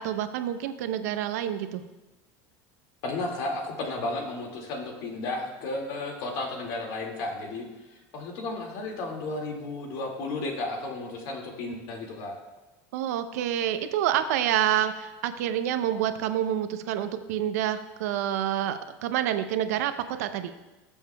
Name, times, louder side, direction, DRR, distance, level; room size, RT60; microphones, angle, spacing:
voice 1, 0.0-1.8 12.9-20.5, right 11 dB, 90° right, 9 dB, 0.7 m, -28 dB
voice 2, 3.0-7.7 8.1-12.4, left 2 dB, 60° left, 1 dB, 2.2 m, -33 dB
19.0 x 7.2 x 2.3 m, 1.1 s
supercardioid pair, 150°, 8 cm